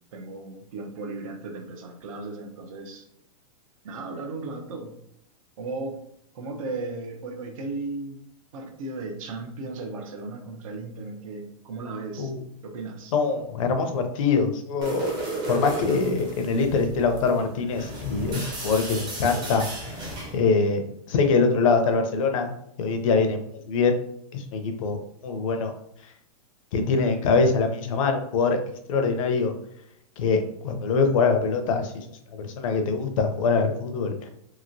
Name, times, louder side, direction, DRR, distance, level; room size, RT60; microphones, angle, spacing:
voice 1, 0.1-3.1 3.8-4.9 5.6-6.0 6.3-8.2 8.5-12.3 12.6-13.1, right 3 dB, 60° right, 4 dB, 0.7 m, -35 dB
voice 2, 13.1-15.1 15.5-23.4 23.7-24.0 24.3-25.7 26.0-26.1 26.7-28.6 28.9-29.5 30.2-34.3, left 4 dB, 60° left, 5 dB, 0.6 m, -24 dB
sound 1, 14.8-20.4, right 2 dB, 20° right, 0.6 m, -34 dB
2.9 x 2.8 x 2.6 m, 0.74 s
supercardioid pair, 155°, 20 cm